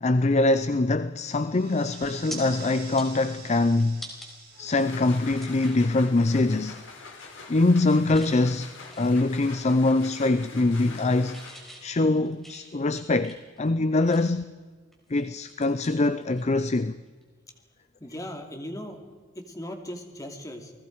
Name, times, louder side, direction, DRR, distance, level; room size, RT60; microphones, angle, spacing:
voice 1, 0.0-4.1 4.6-6.8 7.5-11.4 11.8-14.5 15.1-17.0, left 2 dB, 35° left, 0.5 m, -23 dB
sound 1, 1.2-7.1, right 5 dB, 55° right, 5.2 m, -48 dB
sound 2, 1.3-1.5 1.9-2.4 2.8-4.3 4.8-4.9 5.4-5.9 6.3-6.5 6.8-7.2 7.6-8.4 8.7-10.1 10.3-11.1 11.3-14.5 14.9-16.7 17.0-17.2 19.1-19.3, right 1 dB, ahead, 4.5 m, -46 dB
sound 3, 4.5-11.9, left 4 dB, 85° left, 4.5 m, -45 dB
voice 2, 18.0-19.0 19.3-20.7, left 1 dB, 20° left, 2.7 m, -38 dB
30.0 x 19.5 x 4.7 m
head